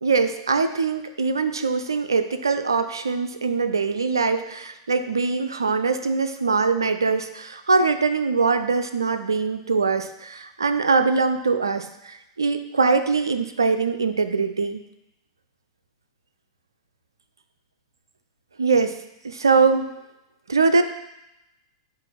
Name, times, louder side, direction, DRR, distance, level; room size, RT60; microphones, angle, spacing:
voice 1, 0.0-14.8 18.6-19.0 19.2-19.9 20.5-20.8, right 4 dB, 75° right, 9 dB, 0.5 m, -22 dB
7.5 x 2.6 x 5.8 m, 0.90 s
figure-of-eight pair, 95°, 2 cm